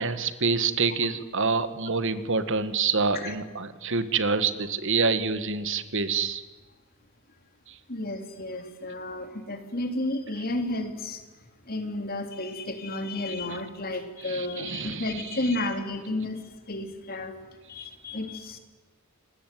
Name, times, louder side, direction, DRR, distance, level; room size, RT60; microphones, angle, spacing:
voice 1, 0.0-6.4 7.7-7.8 13.5-13.6 14.2-15.3, right 4 dB, 60° right, 12 dB, 1.8 m, -27 dB
voice 2, 7.9-11.2 11.7-17.4 17.7-18.6, left 2 dB, 40° left, 7 dB, 3.5 m, -32 dB
28.0 x 20.5 x 9.3 m, 1.3 s
head